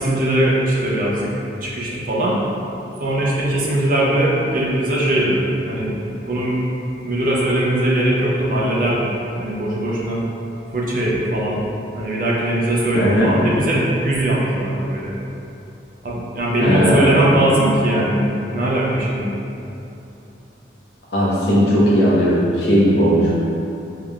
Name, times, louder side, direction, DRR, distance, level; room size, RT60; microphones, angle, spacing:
voice 1, 0.0-1.3 1.6-2.4 3.0-6.6 7.0-9.1 9.4-10.2 10.7-11.6 11.9-15.1 16.0-19.4, right 1 dB, 45° right, -5 dB, 0.5 m, -20 dB
voice 2, 12.9-13.3 16.6-17.3 21.1-23.3, equal, 60° left, -7 dB, 0.8 m, -16 dB
3.7 x 3.2 x 2.3 m, 2.9 s
head